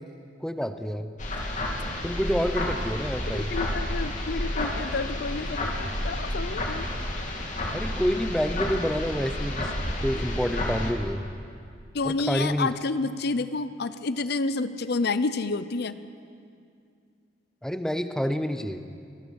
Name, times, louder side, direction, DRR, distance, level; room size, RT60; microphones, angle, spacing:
voice 1, 0.4-1.1 2.0-3.5 7.7-9.7 10.0-11.2 12.0-12.7 17.6-18.8, equal, 5° left, 8 dB, 0.9 m, -28 dB
sound 1, 1.2-10.9, left 1 dB, 45° left, 2.9 m, -30 dB
voice 2, 3.3-6.9 11.9-16.0, left 3 dB, 60° left, 13 dB, 0.7 m, -29 dB
24.5 x 19.5 x 6.4 m, 2.3 s
head